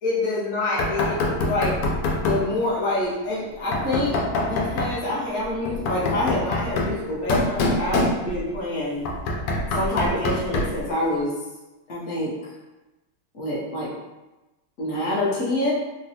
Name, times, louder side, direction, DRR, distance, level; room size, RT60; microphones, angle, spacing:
voice 1, 0.0-1.9 2.2-9.0 9.7-11.3 11.9-12.3 13.3-13.9 14.8-15.7, left 1 dB, 55° left, -7 dB, 0.8 m, -26 dB
Knock, 0.8-2.5 3.7-5.0 5.6-8.5 9.0-10.8, left 2 dB, 85° left, 1.6 m, -25 dB
3.9 x 2.2 x 2.7 m, 1.1 s
omnidirectional pair, 2.4 m